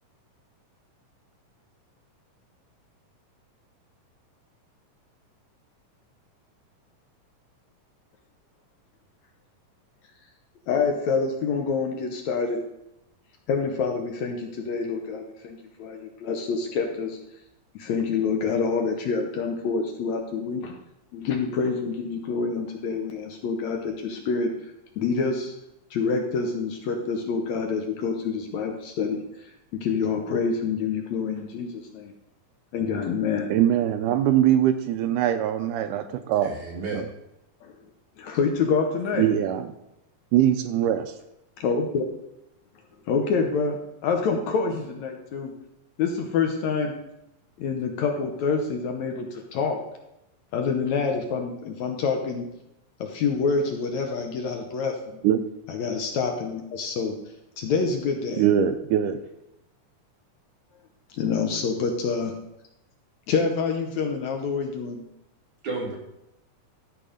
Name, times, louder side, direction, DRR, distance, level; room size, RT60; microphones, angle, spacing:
voice 1, 10.7-12.6 13.5-17.2 17.8-20.8 21.1-24.6 25.0-25.5 25.9-29.2 29.8-32.1 32.7-33.5 37.6-37.7 38.2-39.3 41.6-42.0 43.1-45.5 46.0-46.9 47.6-49.8 50.5-52.5 53.0-55.2 55.7-57.1 57.6-58.5 61.2-62.3 63.3-65.0, left 5 dB, 70° left, 3 dB, 2.0 m, -27 dB
voice 2, 33.5-36.6 36.9-37.0 39.2-39.7 40.3-41.1 55.2-55.4 58.4-59.2, right 11 dB, 80° right, 9 dB, 2.1 m, -22 dB
voice 3, 36.4-37.1 65.6-66.0, right 3 dB, 65° right, -3 dB, 3.7 m, -32 dB
13.0 x 4.7 x 5.1 m, 0.86 s
omnidirectional pair, 3.8 m